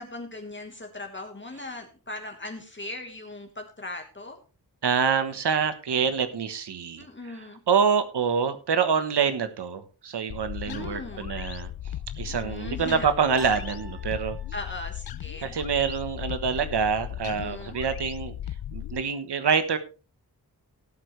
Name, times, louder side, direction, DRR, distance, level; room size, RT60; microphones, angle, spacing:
voice 1, 0.0-4.4 7.0-7.6 10.7-11.3 12.4-13.1 14.5-15.5 17.2-17.8, left 2 dB, 30° left, 4 dB, 1.5 m, -39 dB
voice 2, 4.8-11.7 12.2-14.4 15.4-18.4 18.7-19.8, right 6 dB, 85° right, 10 dB, 1.3 m, -26 dB
sound 1, 10.3-19.0, left 11 dB, 65° left, 0.5 m, -37 dB
sound 2, 10.8-11.5 13.4-14.8, equal, 55° right, 6.0 m, -47 dB
18.0 x 8.1 x 3.2 m, 0.34 s
wide cardioid pair, 130°, 39 cm